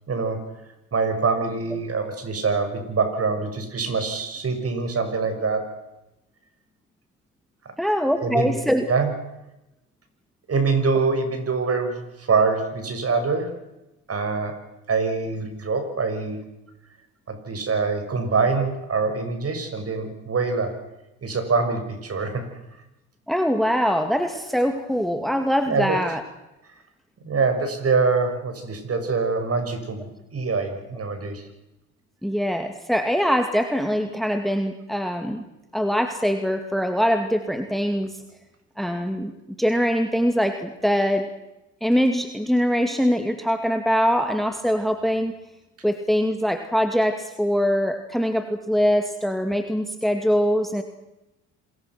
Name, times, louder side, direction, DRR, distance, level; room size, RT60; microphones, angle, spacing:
voice 1, 0.1-0.4 0.9-5.7 7.6-7.7 8.2-8.5 8.9-9.1 10.5-13.5 14.1-14.6 14.9-16.4 17.3-20.7 21.2-22.4 25.7-26.0 27.2-31.5, right 4 dB, 35° right, 7 dB, 6.3 m, -24 dB
voice 2, 7.8-8.9 23.3-26.2 32.2-35.4 35.7-38.2 38.8-39.3 39.6-41.3 41.8-45.4 45.8-50.8, equal, ahead, 7 dB, 2.3 m, -23 dB
27.0 x 22.0 x 6.1 m, 0.95 s
hypercardioid pair, 65°, 38 cm